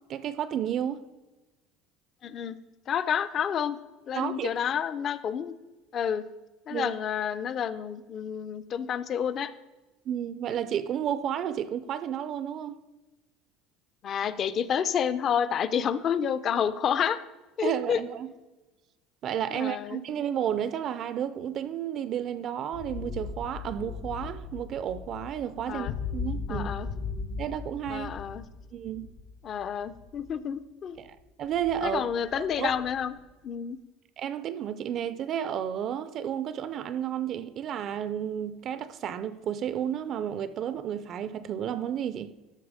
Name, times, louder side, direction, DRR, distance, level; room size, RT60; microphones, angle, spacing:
voice 1, 0.1-1.0 4.1-4.5 6.7-6.9 10.1-12.8 17.6-18.3 19.2-26.7 27.4-28.1 28.7-29.1 31.0-32.0 32.3-32.7 34.2-42.3, right 9 dB, 40° right, 0.4 m, -32 dB
voice 2, 2.2-2.6 2.9-3.8 4.1-5.5 5.9-6.2 6.7-9.5 14.0-17.2 17.6-18.0 19.5-20.0 25.7-25.9 26.5-26.9 27.9-28.4 29.4-31.0 31.8-33.1 33.4-33.8, left 8 dB, 35° left, 0.5 m, -29 dB
sound 1, 22.7-30.3 31.0-31.1 31.4-33.1, left 5 dB, 80° left, 2.9 m, -38 dB
13.0 x 5.6 x 4.9 m
cardioid pair, 160°, 0 cm